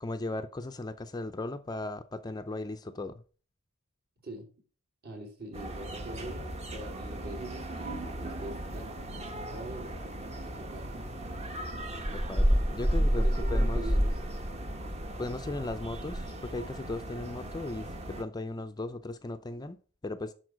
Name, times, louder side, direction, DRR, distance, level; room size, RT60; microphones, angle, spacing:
voice 1, 0.0-3.2 12.1-13.9 15.2-19.8 20.0-20.3, left 2 dB, 20° left, 0.5 m, -37 dB
voice 2, 5.0-8.9 9.2-10.1 10.4-10.9 13.1-14.2, right 1 dB, 50° right, 3.1 m, -43 dB
sound 1, 5.5-18.2, equal, 30° right, 1.1 m, -32 dB
11.0 x 4.4 x 6.2 m
head